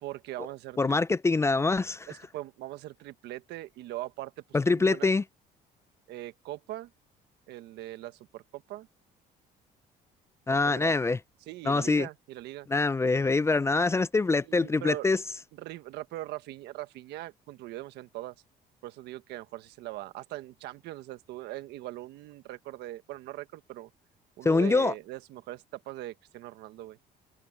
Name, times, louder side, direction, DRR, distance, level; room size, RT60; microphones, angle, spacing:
voice 1, 0.0-1.0 2.1-4.3 4.7-5.1 6.1-6.9 7.5-8.9 10.6-11.0 11.5-12.7 14.5-15.0 15.6-18.3 18.8-23.9 24.4-27.0, right 16 dB, 85° right, 1.3 m, -41 dB
voice 2, 0.8-2.1 4.5-5.2 10.5-11.2 11.6-12.1 12.7-15.2 24.4-24.9, left 3 dB, 15° left, 0.4 m, -24 dB
cardioid pair, 110°, 17 cm